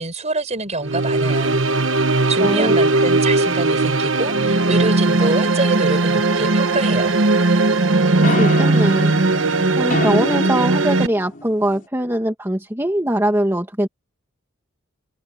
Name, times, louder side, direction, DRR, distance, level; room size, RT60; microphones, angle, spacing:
voice 1, 0.0-1.6 1.9-7.2, right 2 dB, 35° right, 5.3 m, -25 dB
sound 1, 0.8-11.1, right 2 dB, 65° right, 1.3 m, -18 dB
voice 2, 2.4-2.8 8.1-9.1 9.8-13.9, right 1 dB, 15° right, 2.2 m, -22 dB
sound 2, 6.7-7.6 8.2-11.9, left 2 dB, 45° left, 5.4 m, -29 dB
head